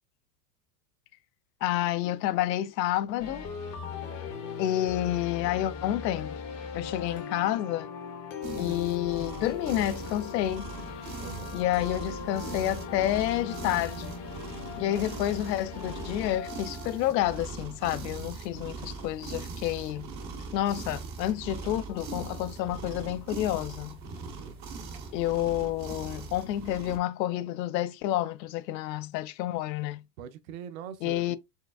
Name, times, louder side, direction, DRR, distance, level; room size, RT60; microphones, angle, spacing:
voice 1, 1.6-3.5 4.6-6.4 6.7-7.9 8.6-10.7 11.5-14.2 14.8-20.1 20.5-24.0 25.1-30.0 31.0-31.4, left 13 dB, 85° left, 0.6 m, -29 dB
sound 1, 3.2-18.1, left 6 dB, 30° left, 0.6 m, -39 dB
sound 2, 8.4-27.0, right 4 dB, 20° right, 0.5 m, -40 dB
voice 2, 11.2-11.7 24.3-24.6 30.2-31.4, right 8 dB, 55° right, 0.7 m, -42 dB
4.5 x 3.2 x 2.3 m
supercardioid pair, 155°, 49 cm